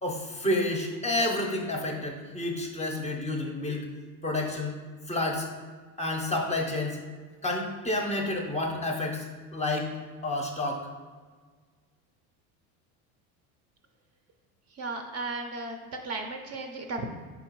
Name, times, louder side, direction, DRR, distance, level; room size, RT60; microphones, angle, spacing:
voice 1, 0.0-3.9 4.2-4.7 5.1-5.5 6.0-7.0 7.4-9.3 9.5-9.9 10.2-10.9, left 1 dB, 15° left, 1 dB, 0.6 m, -29 dB
voice 2, 14.7-17.0, right 3 dB, 40° right, 4 dB, 0.5 m, -35 dB
4.8 x 3.7 x 3.0 m, 1.5 s
supercardioid pair, 95°, 42 cm